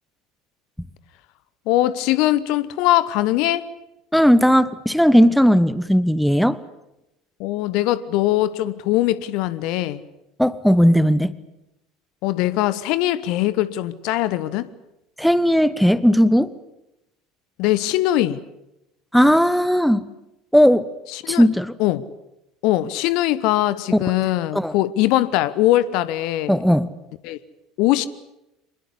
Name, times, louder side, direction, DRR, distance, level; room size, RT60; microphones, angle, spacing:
voice 1, 1.7-3.7 7.4-10.0 12.2-14.7 17.6-18.4 21.1-21.5 21.8-22.0 22.6-26.6 27.2-27.4 27.8-28.1, left 15 dB, 55° left, 1.0 m, -21 dB
voice 2, 4.1-6.6 10.4-11.3 15.2-16.5 19.1-20.1 20.5-20.9 21.3-21.7 24.5-24.7 26.5-26.9, equal, ahead, 1.1 m, -16 dB
25.0 x 21.0 x 8.4 m
figure-of-eight pair, 65°, 0 cm